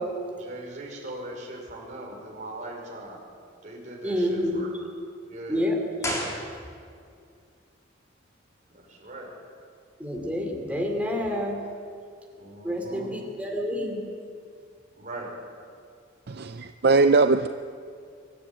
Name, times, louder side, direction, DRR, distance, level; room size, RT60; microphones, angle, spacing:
voice 1, 0.3-3.2 3.6-4.7 5.3-5.7 8.7-9.3 12.4-13.1 15.0-15.3, right 1 dB, 40° right, -2 dB, 5.4 m, -40 dB
voice 2, 4.0-4.6 5.5-5.8 10.0-11.6 12.6-14.0, left 1 dB, 5° right, 1 dB, 3.0 m, -28 dB
sound 1, 6.0-7.1 7.3-7.4, equal, 15° left, 3.6 m, -33 dB
voice 3, 16.3-17.5, right 3 dB, 55° right, 9 dB, 0.5 m, -20 dB
24.0 x 12.0 x 8.9 m, 2.2 s
head